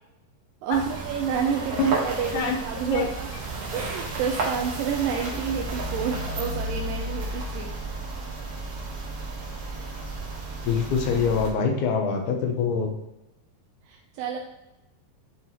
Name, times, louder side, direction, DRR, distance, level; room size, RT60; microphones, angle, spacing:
voice 1, 0.6-3.3 3.7-7.8 13.8-14.4, right 7 dB, 80° right, 0 dB, 2.3 m, -29 dB
sound 1, 0.7-11.5, right 2 dB, 55° right, 1.9 m, -32 dB
voice 2, 10.7-12.9, left 5 dB, 70° left, 4 dB, 2.1 m, -24 dB
9.4 x 4.6 x 3.0 m, 0.96 s
omnidirectional pair, 4.1 m